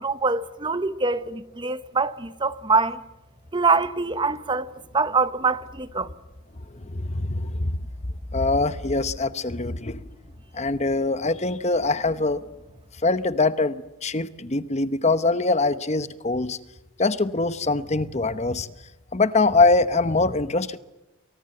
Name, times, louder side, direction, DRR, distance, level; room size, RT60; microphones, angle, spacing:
voice 1, 0.0-3.0 3.5-6.1, right 4 dB, 20° right, 0.9 m, -24 dB
voice 2, 6.7-7.8 8.3-10.0 10.5-12.4 13.0-16.6 17.0-18.7 19.1-20.8, left 3 dB, 30° left, 0.9 m, -23 dB
29.5 x 24.0 x 7.9 m
head